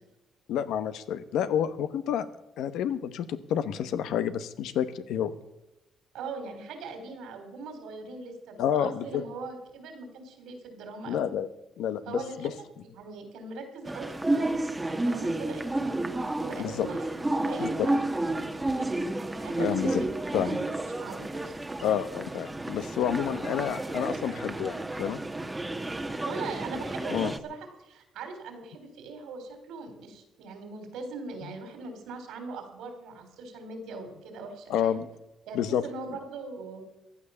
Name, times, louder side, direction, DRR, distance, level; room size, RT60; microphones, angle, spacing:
voice 1, 0.5-2.3 2.6-5.3 8.6-9.2 11.1-11.5 11.8-12.5 16.6-16.9 17.6-17.7 19.6-20.1 20.3-20.6 21.8-25.2 27.1-27.3 34.7-35.0 35.5-35.8, left 9 dB, 85° left, 12 dB, 1.0 m, -29 dB
voice 2, 6.1-11.3 12.1-12.5 13.0-16.0 16.4-20.7 21.0-21.5 23.3-23.4 26.1-35.0 35.5-36.8, right 3 dB, 90° right, 6 dB, 3.8 m, -41 dB
sound 1, 13.8-27.4, right 2 dB, 15° right, 1.1 m, -31 dB
15.5 x 10.0 x 7.0 m, 0.97 s
cardioid pair, 90°, 0 cm